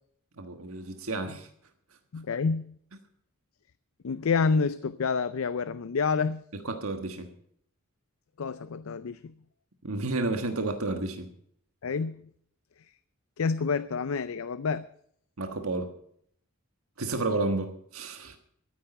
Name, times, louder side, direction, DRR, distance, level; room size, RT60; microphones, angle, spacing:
voice 1, 0.4-1.5 6.5-7.3 9.8-11.3 15.4-15.9 17.0-18.4, right 2 dB, 80° right, 6 dB, 1.4 m, -31 dB
voice 2, 2.1-2.7 4.0-6.4 8.4-9.3 11.8-12.2 13.4-14.9, left 5 dB, 75° left, 14 dB, 0.5 m, -28 dB
13.5 x 9.4 x 6.8 m, 0.66 s
head